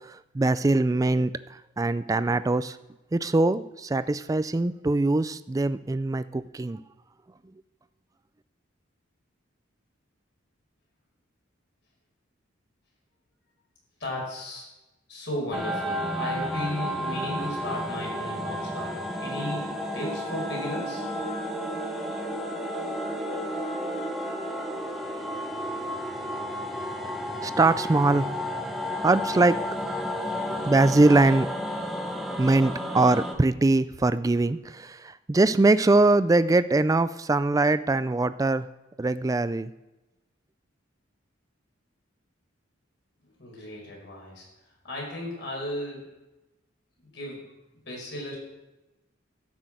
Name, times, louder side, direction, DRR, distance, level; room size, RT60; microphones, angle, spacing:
voice 1, 0.3-1.3 1.8-2.8 3.1-6.8 27.4-28.3 29.0-29.6 30.5-31.5 32.4-38.6 39.0-39.7, right 2 dB, 15° right, 14 dB, 0.3 m, -22 dB
voice 2, 14.0-14.7 15.1-21.0 43.4-44.5 44.8-46.1 47.1-47.4 47.8-48.4, left 1 dB, 60° left, -2 dB, 5.1 m, -35 dB
sound 1, 15.5-33.3, equal, ahead, 0.9 m, -32 dB
12.0 x 6.2 x 7.7 m, 1.0 s
head